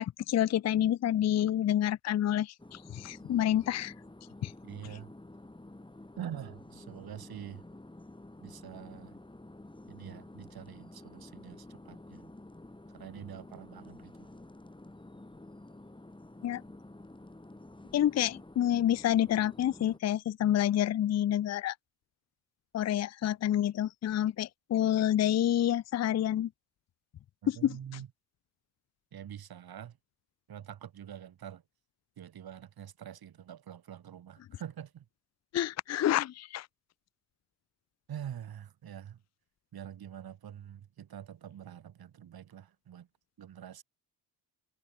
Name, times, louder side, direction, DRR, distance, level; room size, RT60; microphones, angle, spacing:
voice 1, 0.0-3.9 4.4-4.5 16.4-16.6 17.9-21.7 22.7-26.5 27.5-27.8 35.5-36.7, left 11 dB, 40° left, 0.5 m, -28 dB
sound 1, 2.6-20.0, left 2 dB, 10° left, 6.5 m, -50 dB
voice 2, 4.6-5.1 6.2-7.6 8.4-9.2 9.9-12.3 12.9-14.3 27.4-28.1 29.1-30.0 30.5-31.6 32.2-35.0 38.1-39.2 39.7-43.1 43.4-43.8, right 10 dB, 60° right, 3.5 m, -45 dB
cardioid pair, 85°, 41 cm